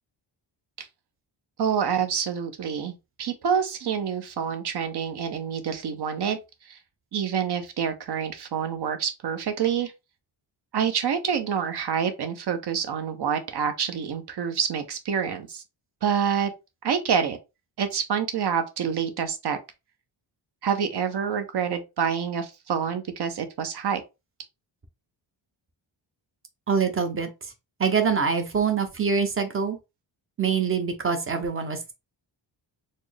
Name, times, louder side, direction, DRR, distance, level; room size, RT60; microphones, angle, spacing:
voice 1, 1.6-6.4 6.7-6.8 7.1-9.9 10.7-15.6 16.0-16.5 16.8-17.4 17.8-19.6 20.6-24.0, right 7 dB, 60° right, 0.8 m, -27 dB
voice 2, 26.7-27.5 27.8-29.8 30.4-31.9, right 6 dB, 30° right, 0.7 m, -25 dB
4.2 x 2.1 x 3.3 m
wide cardioid pair, 160°, 46 cm